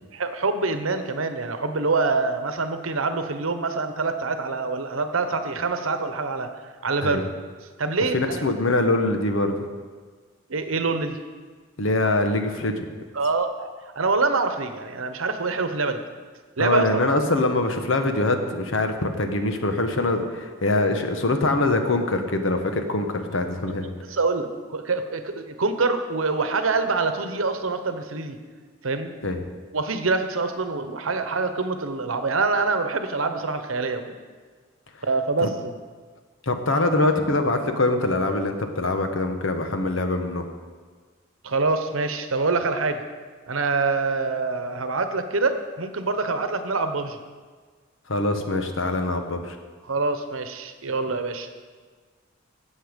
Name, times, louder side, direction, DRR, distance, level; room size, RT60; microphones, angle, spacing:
voice 1, 0.1-6.5 6.8-7.3 7.8-8.4 10.5-11.2 13.1-13.7 14.0-16.0 16.6-17.0 24.1-28.4 28.8-29.1 29.7-34.0 35.0-35.7 41.4-43.0 43.5-47.2 49.9-51.5, right 3 dB, 90° right, 8 dB, 1.0 m, -25 dB
voice 2, 8.1-9.7 11.8-12.9 16.6-23.9 29.2-29.4 35.4-35.5 36.5-40.5 48.1-49.6, left 2 dB, 75° left, 6 dB, 1.1 m, -23 dB
14.0 x 7.9 x 5.1 m, 1.5 s
head